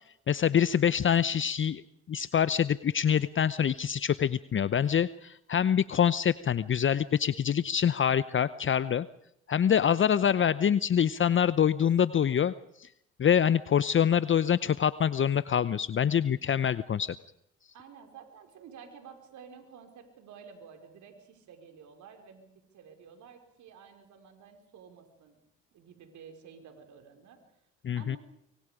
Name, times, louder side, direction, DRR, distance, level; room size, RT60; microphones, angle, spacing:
voice 1, 0.3-1.8 2.1-9.1 9.5-12.9 13.2-17.1 27.8-28.2, left 8 dB, 40° left, 16 dB, 0.8 m, -25 dB
voice 2, 17.7-25.4 25.7-27.4 27.9-28.2, right 7 dB, 70° right, 6 dB, 5.1 m, -51 dB
25.0 x 24.5 x 5.1 m, 0.75 s
supercardioid pair, 60°, 31 cm